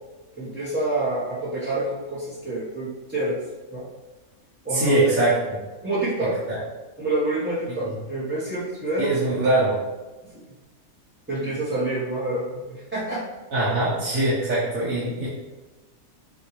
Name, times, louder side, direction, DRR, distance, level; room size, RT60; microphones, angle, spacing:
voice 1, 0.4-3.4 3.7-3.8 4.6-5.0 5.8-6.3 7.0-9.4 11.3-13.2, right 2 dB, 10° right, -11 dB, 1.0 m, -27 dB
voice 2, 4.7-5.6 6.2-6.6 7.8-7.9 9.0-9.7 13.5-15.3, right 2 dB, 75° right, -9 dB, 1.5 m, -22 dB
6.2 x 2.7 x 3.2 m, 1.2 s
omnidirectional pair, 1.5 m